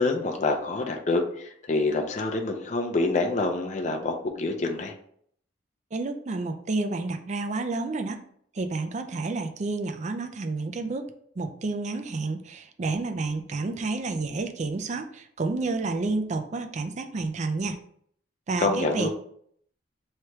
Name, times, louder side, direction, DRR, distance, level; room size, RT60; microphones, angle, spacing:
voice 1, 0.0-4.9 18.6-19.1, left 3 dB, 40° left, 3 dB, 0.5 m, -26 dB
voice 2, 5.9-8.2 8.6-11.1 11.4-17.8 18.5-19.1, right 3 dB, 40° right, 7 dB, 0.4 m, -30 dB
3.2 x 3.0 x 4.5 m, 0.64 s
head